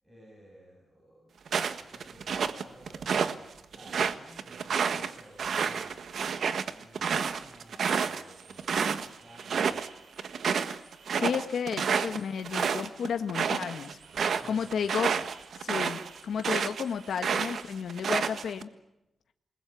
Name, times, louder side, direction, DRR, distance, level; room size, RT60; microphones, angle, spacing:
voice 1, 0.0-6.0 6.7-9.8 14.2-15.3, equal, 10° right, -1 dB, 7.4 m, -55 dB
sound 1, 1.5-3.3 3.7-9.1 9.4-9.9 10.2-16.8 17.2-18.6, right 6 dB, 65° right, 1.6 m, -29 dB
sound 2, 4.9-17.7, right 5 dB, 90° right, 4.9 m, -57 dB
voice 2, 11.1-14.0 14.5-15.1 15.6-18.7, left 7 dB, 80° left, 7 dB, 1.6 m, -32 dB
28.5 x 21.5 x 8.4 m, 0.90 s
wide cardioid pair, 160°, 0 cm